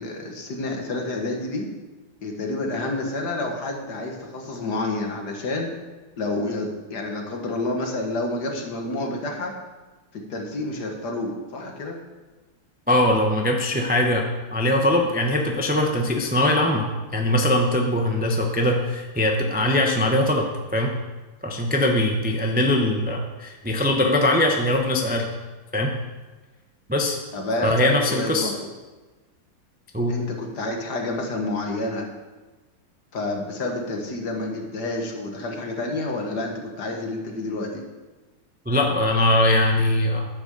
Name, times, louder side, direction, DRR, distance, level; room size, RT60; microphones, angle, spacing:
voice 1, 0.0-1.7 2.2-5.7 6.2-9.6 10.1-12.0 27.3-28.6 30.1-32.1 33.1-37.8, left 2 dB, 60° left, 2 dB, 1.9 m, -29 dB
voice 2, 12.9-14.3 14.5-20.9 21.4-25.3 25.7-25.9 26.9-27.2 27.6-28.5 29.9-30.1 38.7-40.3, left 1 dB, 10° right, 1 dB, 0.4 m, -21 dB
10.5 x 6.0 x 6.8 m, 1.2 s
omnidirectional pair, 2.1 m